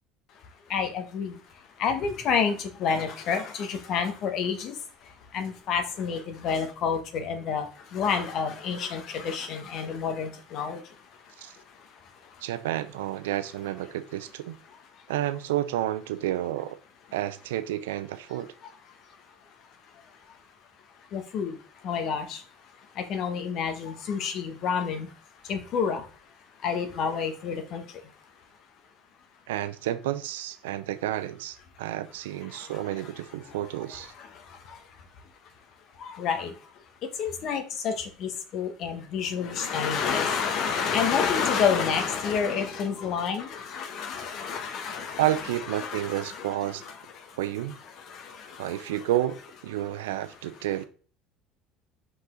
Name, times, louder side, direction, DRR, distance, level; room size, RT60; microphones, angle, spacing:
voice 1, 0.7-1.4 1.8-4.7 5.3-7.7 7.9-10.8 21.1-21.5 21.8-22.4 23.0-25.1 25.5-26.0 26.6-27.8 32.5-32.8 33.9-34.3 34.7-34.8 36.0-36.5 37.2-47.0 48.0-49.0, left 6 dB, 55° left, 7 dB, 1.5 m, -29 dB
voice 2, 12.4-14.6 15.1-16.8 17.1-18.5 29.5-34.1 45.2-46.8 47.4-47.8 48.6-49.4 49.6-50.9, right 13 dB, 75° right, 13 dB, 0.6 m, -30 dB
5.6 x 5.3 x 3.9 m, 0.39 s
hypercardioid pair, 65°, 0 cm